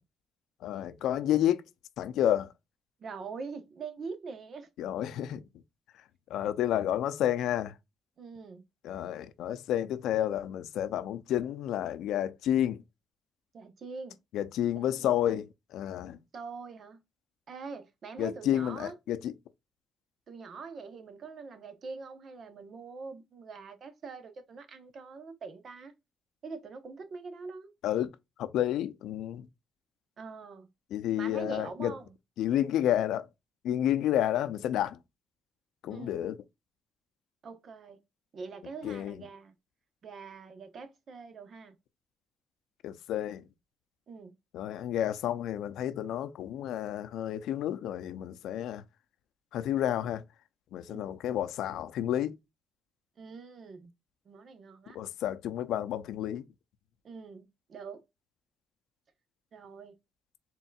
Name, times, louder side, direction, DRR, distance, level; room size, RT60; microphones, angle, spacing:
voice 1, 0.6-1.6 2.0-2.5 4.8-5.4 6.3-7.7 8.8-12.8 14.3-16.2 18.2-19.3 27.8-28.1 28.4-29.5 30.9-31.9 32.4-33.3 33.6-35.0 35.8-36.4 38.8-39.1 42.8-43.4 44.5-48.8 49.5-50.2 50.7-52.4 54.9-56.4, left 11 dB, 85° left, 0.4 m, -30 dB
voice 2, 3.0-4.7 8.2-8.6 13.5-14.2 14.8-15.3 16.3-17.0 17.5-18.9 20.3-25.9 26.4-27.7 30.2-30.7 31.2-32.1 35.9-36.3 37.4-38.0 38.3-39.5 40.0-41.8 44.1-44.4 50.9-51.2 53.2-53.9 54.2-55.0 57.0-58.0 59.5-60.0, right 4 dB, 55° right, 0.9 m, -44 dB
4.2 x 3.7 x 2.3 m
cardioid pair, 90°, 0 cm